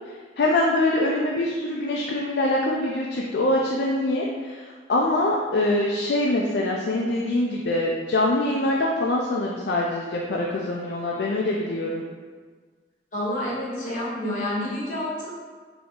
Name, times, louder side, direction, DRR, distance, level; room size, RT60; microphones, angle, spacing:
voice 1, 0.4-4.6 4.9-12.0, left 1 dB, 65° left, -2 dB, 0.4 m, -24 dB
voice 2, 13.1-15.3, left 1 dB, 45° left, -6 dB, 1.4 m, -28 dB
3.9 x 2.9 x 3.6 m, 1.5 s
head